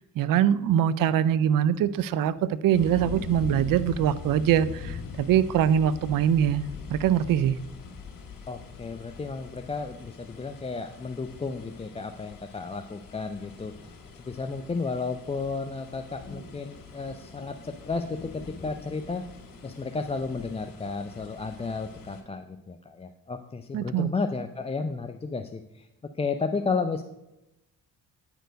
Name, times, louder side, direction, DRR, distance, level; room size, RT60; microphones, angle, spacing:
voice 1, 0.0-6.6 6.9-7.6 23.7-24.1, right 9 dB, 60° right, 17 dB, 0.5 m, -23 dB
sound 1, 2.7-22.2, left 5 dB, 60° left, 1.9 m, -43 dB
voice 2, 8.5-13.9 14.2-19.2 19.6-25.9 26.2-27.0, left 4 dB, 15° left, 6 dB, 0.4 m, -33 dB
9.1 x 4.5 x 5.1 m, 0.92 s
cardioid pair, 70°, 38 cm